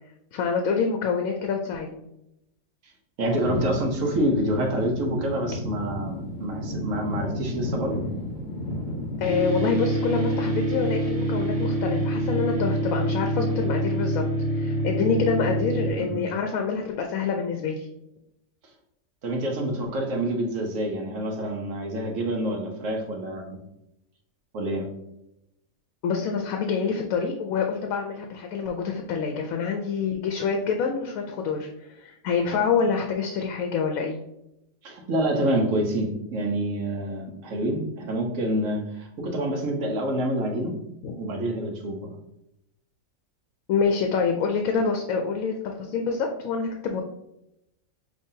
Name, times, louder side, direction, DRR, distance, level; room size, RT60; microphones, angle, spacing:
voice 1, 0.3-2.0 9.2-14.2 14.5-17.9 26.0-34.2 41.0-41.1 43.7-47.0, left 5 dB, 80° left, 3 dB, 1.0 m, -26 dB
voice 2, 3.2-8.1 16.0-16.3 19.2-23.6 24.5-24.9 34.8-40.8 41.2-42.2, right 1 dB, 70° right, 1 dB, 1.2 m, -27 dB
sound 1, 3.4-9.4, left 1 dB, 45° left, 0.7 m, -32 dB
sound 2, 9.2-15.9, right 1 dB, 30° right, 1.1 m, -26 dB
5.4 x 3.2 x 2.7 m, 0.85 s
omnidirectional pair, 1.4 m